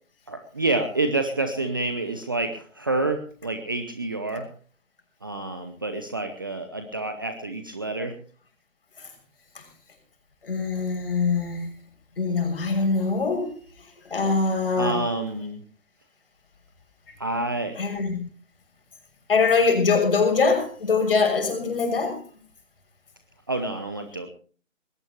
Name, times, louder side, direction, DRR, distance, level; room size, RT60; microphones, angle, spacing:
voice 1, 0.3-4.5 5.2-8.2 14.8-15.6 17.2-17.8 23.5-24.3, right 2 dB, 15° right, 7 dB, 0.7 m, -28 dB
voice 2, 10.4-11.7 12.2-13.5 13.8-15.0 17.8-18.2 19.3-22.2, left 4 dB, 45° left, 6 dB, 6.4 m, -23 dB
21.0 x 18.0 x 3.0 m, 0.41 s
figure-of-eight pair, 150°, 39 cm